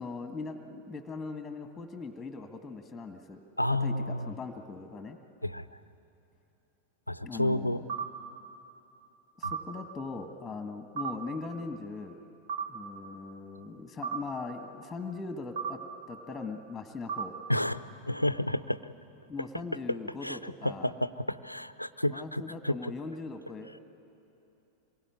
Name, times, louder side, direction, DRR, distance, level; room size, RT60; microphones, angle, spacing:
voice 1, 0.0-3.4 3.8-5.2 7.2-7.8 9.4-12.2 12.7-15.8 16.1-17.4 19.3-20.9 22.1-23.7, left 4 dB, 10° left, 7 dB, 1.7 m, -40 dB
voice 2, 3.6-4.3 5.4-5.7 7.1-7.8 9.4-9.5 17.5-18.8 20.2-22.9, left 1 dB, 90° left, 15 dB, 0.6 m, -31 dB
sound 1, 7.9-8.1 9.4-9.6 11.0-11.2 12.5-12.7 14.0-14.2 15.6-15.7 17.1-17.3, right 6 dB, 55° right, 3.7 m, -33 dB
26.0 x 22.5 x 9.8 m, 2.9 s
figure-of-eight pair, 90°, 0 cm